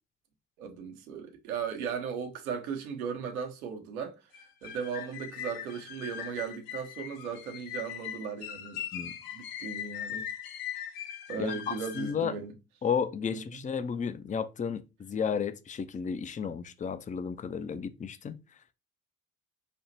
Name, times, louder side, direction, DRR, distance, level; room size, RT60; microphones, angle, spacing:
voice 1, 0.6-4.2 4.6-10.2 11.3-12.6 13.3-13.4, right 6 dB, 75° right, 1.0 m, -37 dB
sound 1, 4.3-12.2, left 10 dB, 55° left, 0.8 m, -40 dB
voice 2, 11.4-12.3 12.8-18.4, left 6 dB, 20° left, 0.5 m, -33 dB
6.2 x 2.8 x 2.7 m
figure-of-eight pair, 50°, 44 cm